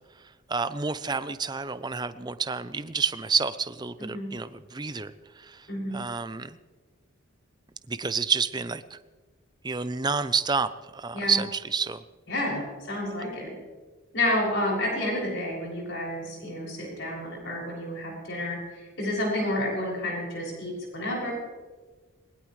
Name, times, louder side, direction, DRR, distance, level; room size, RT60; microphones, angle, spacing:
voice 1, 0.5-5.7 5.9-6.6 7.9-9.0 9.6-12.0, right 5 dB, 20° right, 12 dB, 0.5 m, -29 dB
voice 2, 4.0-4.3 5.7-6.0 11.1-11.4 12.3-13.5 14.1-21.3, left 1 dB, 55° left, -3 dB, 6.7 m, -30 dB
21.0 x 20.5 x 3.2 m, 1.4 s
head